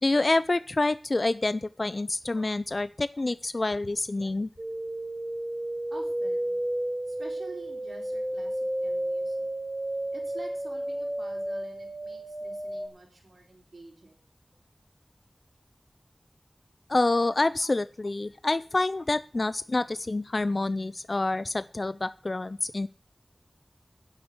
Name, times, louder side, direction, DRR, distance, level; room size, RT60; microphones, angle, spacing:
voice 1, 0.0-4.5 16.9-22.9, left 2 dB, 55° left, 15 dB, 0.5 m, -27 dB
sound 1, 4.6-12.9, right 1 dB, 30° right, 2.1 m, -32 dB
voice 2, 5.9-6.6 7.1-9.5 10.1-14.2, right 2 dB, 80° right, 1 dB, 4.2 m, -48 dB
10.5 x 8.2 x 7.9 m, 0.38 s
wide cardioid pair, 55°, 0 cm